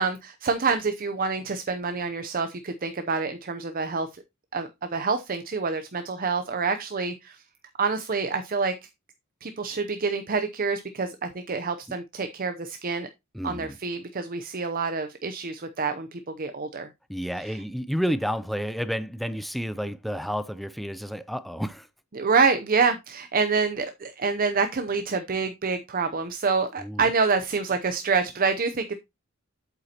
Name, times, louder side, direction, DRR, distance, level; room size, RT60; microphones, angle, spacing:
voice 1, 0.0-4.1 4.5-7.4 7.8-8.7 9.4-13.1 13.4-16.9 17.4-17.6 22.1-28.9, right 4 dB, 45° right, 0.7 m, -27 dB
voice 2, 13.3-13.8 17.1-21.9 26.8-27.1, equal, ahead, 0.5 m, -30 dB
8.3 x 8.0 x 2.9 m
head